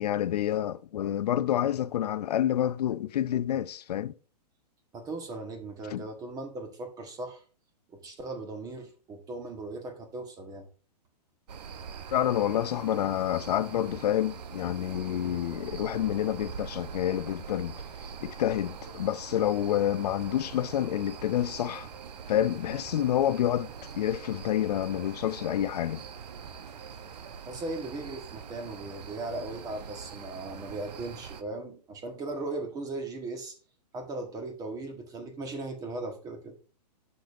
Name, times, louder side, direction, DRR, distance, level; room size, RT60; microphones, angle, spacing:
voice 1, 0.0-4.1 5.9-6.0 12.1-17.8 18.2-21.9 22.3-26.0, left 11 dB, 70° left, 0.5 m, -28 dB
voice 2, 4.9-7.4 7.9-10.6 27.4-33.6 33.9-36.5, right 2 dB, 15° right, 1.4 m, -38 dB
sound 1, 11.5-31.4, right 6 dB, 75° right, 0.9 m, -43 dB
sound 2, 20.0-27.4, right 4 dB, 40° right, 2.3 m, -53 dB
10.0 x 6.7 x 2.6 m
hypercardioid pair, 145°, 21 cm